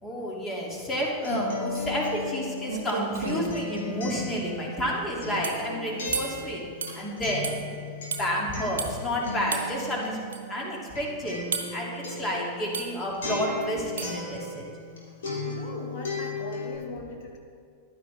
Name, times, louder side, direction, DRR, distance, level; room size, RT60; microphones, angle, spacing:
voice 1, 0.0-6.6 6.9-7.6 8.1-10.2 10.5-11.4 11.7-14.6, equal, 20° left, -2 dB, 2.7 m, -30 dB
Acoustic guitar, 0.8-15.0 15.2-16.7, left 2 dB, 65° left, 3.0 m, -36 dB
sound 1, 2.3-2.4 2.7-3.6 5.4-5.7 6.1-6.4 6.8-7.0 7.4-7.6 8.1-8.3 8.8-8.9 9.5-9.7 10.3-10.4 11.5-11.8 12.7-13.0 14.0-14.2, right 6 dB, 65° right, 1.0 m, -32 dB
voice 2, 15.4-17.4, left 3 dB, 45° left, 1 dB, 1.4 m, -40 dB
15.0 x 11.0 x 3.4 m, 2.2 s
figure-of-eight pair, 90°, 0 cm